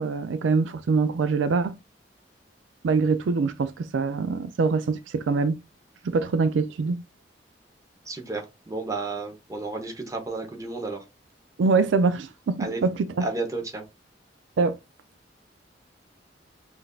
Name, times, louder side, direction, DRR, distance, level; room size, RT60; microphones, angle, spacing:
voice 1, 0.0-1.8 2.8-5.6 6.0-7.0 11.6-13.3 14.6-14.8, right 4 dB, 80° right, 0.4 m, -24 dB
voice 2, 8.1-11.0 12.6-12.8 13.2-13.8, right 3 dB, 20° right, 0.8 m, -32 dB
5.8 x 2.6 x 2.3 m
head